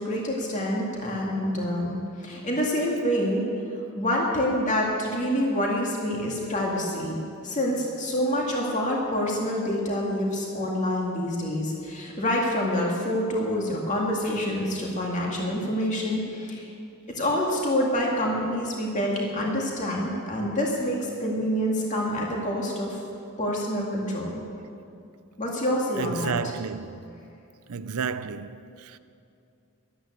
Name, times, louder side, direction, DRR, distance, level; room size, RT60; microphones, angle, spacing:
voice 1, 0.0-3.5 4.0-16.7 17.1-23.0 23.4-24.4 25.4-26.3, equal, 35° left, 2.2 m, -27 dB
voice 2, 26.0-27.2 27.7-29.0, right 6 dB, 80° right, 0.6 m, -32 dB
13.5 x 12.0 x 8.0 m
head